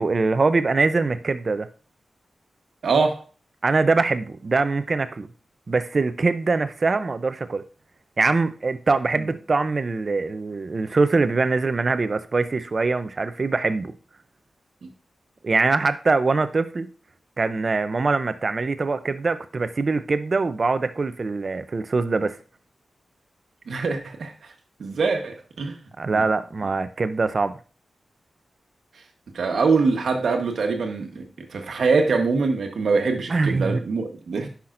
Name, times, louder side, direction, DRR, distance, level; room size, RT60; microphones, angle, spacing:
voice 1, 0.0-1.7 3.6-5.3 5.7-7.6 8.2-13.9 15.4-16.9 17.4-22.4 26.0-27.6 33.3-33.8, right 3 dB, 50° right, 0.6 m, -23 dB
voice 2, 2.8-3.2 9.2-9.3 23.7-24.3 24.8-25.8 26.1-26.2 29.3-34.5, right 4 dB, 80° right, 1.2 m, -23 dB
10.0 x 5.8 x 2.6 m
wide cardioid pair, 80°, 0 cm